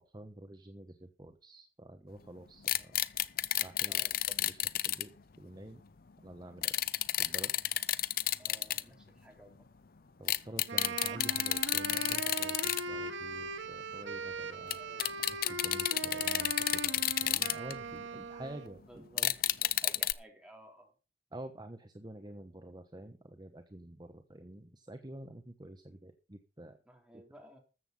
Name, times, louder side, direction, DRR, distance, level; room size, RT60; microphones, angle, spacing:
voice 1, 0.0-3.0 3.6-4.0 4.4-5.1 5.4-5.8 6.2-6.9 7.2-7.5 10.2-14.8 15.3-19.3 21.3-26.8 27.1-27.2, right 1 dB, 25° right, 6 dB, 1.0 m, -49 dB
sound 1, 2.6-5.0 6.6-8.8 10.3-12.8 13.1-13.2 14.7-14.8 15.0-18.0 19.2-20.1, left 13 dB, 55° left, 0.6 m, -31 dB
voice 2, 3.9-4.2 8.4-9.6 14.7-15.3 18.8-20.9 26.9-27.6, right 1 dB, 5° right, 1 dB, 3.8 m, -55 dB
Wind instrument woodwind instrument, 10.7-18.8, right 3 dB, 90° right, 1.5 m, -40 dB
13.5 x 7.9 x 5.4 m, 0.33 s
head